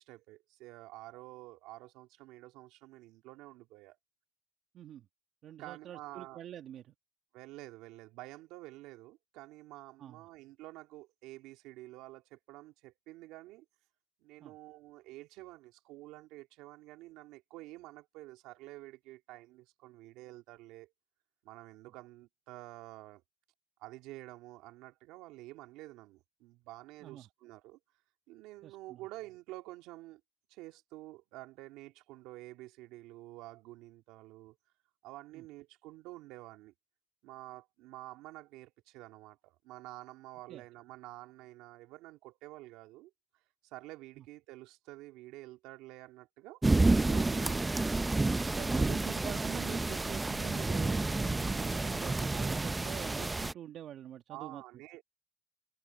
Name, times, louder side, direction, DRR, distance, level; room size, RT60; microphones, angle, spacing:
voice 1, 0.0-4.0 5.6-6.4 7.3-13.6 14.2-20.9 21.4-23.2 23.8-27.8 28.3-30.2 30.5-34.6 35.0-36.7 37.2-46.6 47.0-47.7 54.3-55.0, right 18 dB, 80° right, 2.8 m, -49 dB
voice 2, 4.7-5.1 5.4-6.9 10.0-10.2 14.4-14.5 27.0-27.3 28.6-29.0 35.3-35.4 40.5-40.6 44.2-44.3 48.6-54.6, right 11 dB, 60° right, 1.9 m, -45 dB
sound 1, 46.6-53.5, right 2 dB, 15° right, 0.6 m, -30 dB
supercardioid pair, 90°, 0 cm